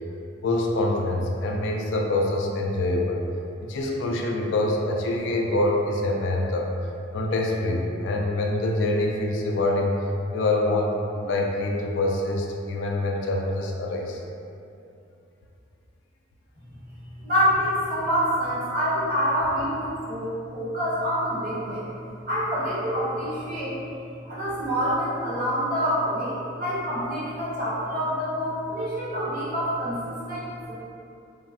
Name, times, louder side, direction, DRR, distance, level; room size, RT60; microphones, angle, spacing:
voice 1, 0.4-3.2 3.7-6.7 7.1-9.9 10.3-14.2, left 2 dB, 65° left, 0 dB, 0.3 m, -25 dB
voice 2, 17.2-21.8 22.3-23.8 24.2-30.7, equal, 50° right, -9 dB, 0.8 m, -26 dB
3.4 x 2.0 x 2.3 m, 2.6 s
head